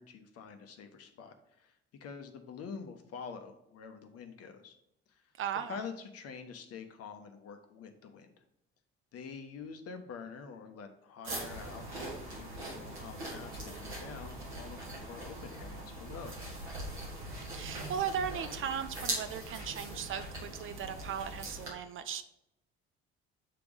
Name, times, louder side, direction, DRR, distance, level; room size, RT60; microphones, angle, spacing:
voice 1, 0.0-4.7 5.1-5.2 5.7-8.4 9.1-16.4, left 6 dB, 45° left, 7 dB, 0.9 m, -47 dB
voice 2, 5.4-5.8 17.5-22.2, right 8 dB, 40° right, 10 dB, 0.6 m, -37 dB
sound 1, 11.2-21.7, right 1 dB, 80° right, 1.6 m, -41 dB
7.7 x 3.5 x 4.9 m, 0.82 s
figure-of-eight pair, 45°, 33 cm